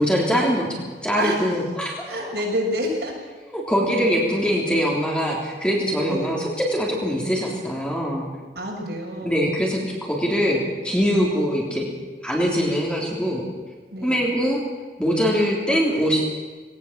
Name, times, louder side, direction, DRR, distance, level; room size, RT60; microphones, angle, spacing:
voice 1, 0.0-2.3 3.5-8.3 9.2-11.8 12.2-13.4 14.0-14.6 15.0-16.2, equal, 5° left, -2 dB, 3.4 m, -23 dB
voice 2, 2.1-3.2 6.1-6.3 8.5-9.5 13.9-14.3, equal, 65° right, -2 dB, 6.7 m, -28 dB
19.0 x 18.5 x 7.5 m, 1.4 s
head